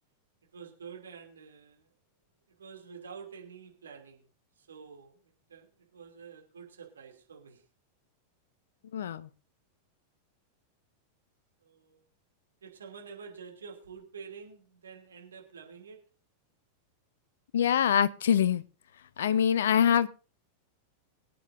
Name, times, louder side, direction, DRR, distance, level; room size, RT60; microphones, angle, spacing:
voice 1, 0.5-1.9 2.6-4.2 4.6-5.2 5.5-7.6 11.6-12.0 12.6-16.0, right 6 dB, 70° right, 2 dB, 2.9 m, -48 dB
voice 2, 8.9-9.3 17.5-18.6 19.2-20.1, left 9 dB, 60° left, 17 dB, 0.6 m, -24 dB
23.5 x 8.6 x 2.7 m, 0.36 s
figure-of-eight pair, 90°, 0 cm